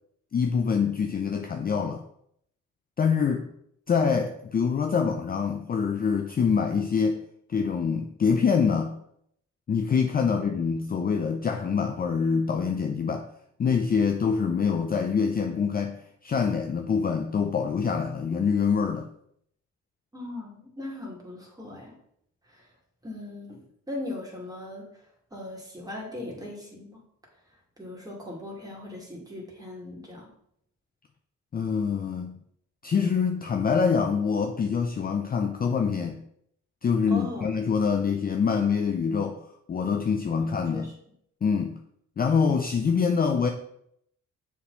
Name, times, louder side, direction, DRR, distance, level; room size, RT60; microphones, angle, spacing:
voice 1, 0.3-2.0 3.0-3.5 3.9-7.2 7.5-9.0 9.7-13.3 13.6-19.1 31.5-32.4 32.8-36.2 36.8-39.4 39.7-40.9 41.4-41.8 42.2-43.5, left 6 dB, 30° left, 4 dB, 0.5 m, -25 dB
voice 2, 20.1-22.0 22.5-22.7 23.0-23.6 23.9-24.9 25.3-27.0 27.8-30.3 37.1-37.5 40.4-40.9, left 1 dB, 10° right, -3 dB, 2.2 m, -39 dB
6.8 x 3.8 x 4.0 m, 0.72 s
cardioid pair, 90°, 30 cm